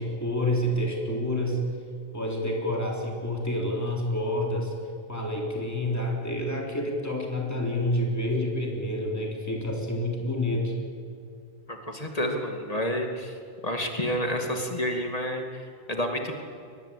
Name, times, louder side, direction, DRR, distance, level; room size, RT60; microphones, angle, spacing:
voice 1, 0.0-1.6 2.1-4.7 5.1-10.7, left 1 dB, 15° left, 0 dB, 3.9 m, -28 dB
voice 2, 11.7-13.4 13.6-16.4, equal, 35° left, 3 dB, 2.6 m, -29 dB
23.0 x 19.0 x 8.6 m, 2.3 s
omnidirectional pair, 1.1 m